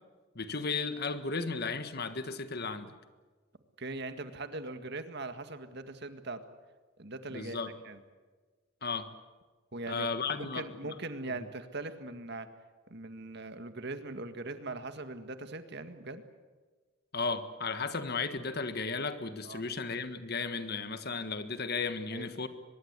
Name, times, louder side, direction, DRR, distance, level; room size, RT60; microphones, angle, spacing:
voice 1, 0.3-2.9 7.3-7.7 8.8-9.1 9.9-10.7 17.1-22.5, left 4 dB, 50° left, 10 dB, 1.6 m, -34 dB
voice 2, 3.8-6.4 7.0-8.0 9.7-10.1 10.4-12.5 12.9-16.2 19.4-19.7 22.1-22.3, right 2 dB, 55° right, 9 dB, 1.9 m, -40 dB
23.5 x 22.0 x 8.2 m, 1.4 s
head